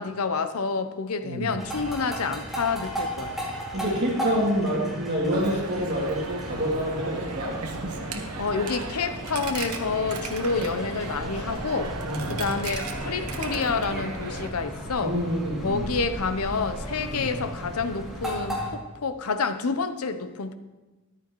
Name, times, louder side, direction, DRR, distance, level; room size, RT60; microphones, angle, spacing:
voice 1, 0.0-3.4 8.4-11.9 12.3-15.1 15.6-20.5, left 4 dB, 75° left, 9 dB, 0.7 m, -28 dB
sound 1, 1.6-18.7, equal, ahead, 2.6 m, -36 dB
voice 2, 3.7-7.5 12.0-12.4 15.0-15.9 17.1-17.3, equal, 50° right, -3 dB, 2.5 m, -27 dB
Coin (dropping), 5.3-14.5, right 3 dB, 90° right, 1.1 m, -35 dB
14.0 x 11.0 x 3.1 m, 1.1 s
head